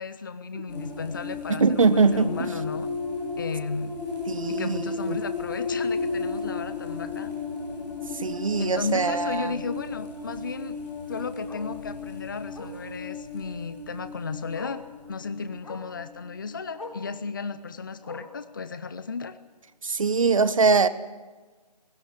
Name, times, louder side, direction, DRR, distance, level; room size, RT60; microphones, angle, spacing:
voice 1, 0.0-2.9 3.4-3.9 4.5-7.3 8.6-10.8 11.1-14.8 15.1-19.4, left 4 dB, 30° left, 12 dB, 0.6 m, -34 dB
sound 1, 0.7-17.1, left 4 dB, 10° left, 3.5 m, -34 dB
voice 2, 1.5-2.5 4.3-5.2 8.1-9.6 19.8-20.9, right 4 dB, 50° right, 14 dB, 1.2 m, -23 dB
Bark, 8.0-8.1 10.6-10.7 11.5-11.7 12.5-12.8 14.0-14.1 14.5-14.9 15.6-15.9 16.7-17.1 18.0-18.5 19.4-19.5, left 2 dB, 50° left, 3.6 m, -43 dB
22.5 x 17.5 x 7.6 m, 1.3 s
figure-of-eight pair, 160°, 21 cm